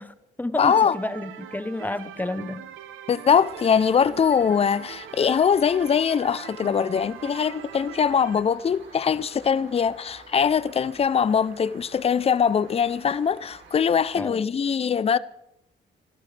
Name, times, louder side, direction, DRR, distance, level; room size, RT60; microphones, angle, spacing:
voice 1, 0.0-2.7 14.2-14.4, left 2 dB, 10° left, 0.9 m, -31 dB
voice 2, 0.6-1.0 3.1-15.2, left 7 dB, 30° left, 0.5 m, -22 dB
sound 1, 0.6-8.4, right 11 dB, 85° right, 0.9 m, -42 dB
sound 2, 3.5-14.2, right 4 dB, 70° right, 4.5 m, -50 dB
28.0 x 13.0 x 3.3 m
cardioid pair, 90°, 20 cm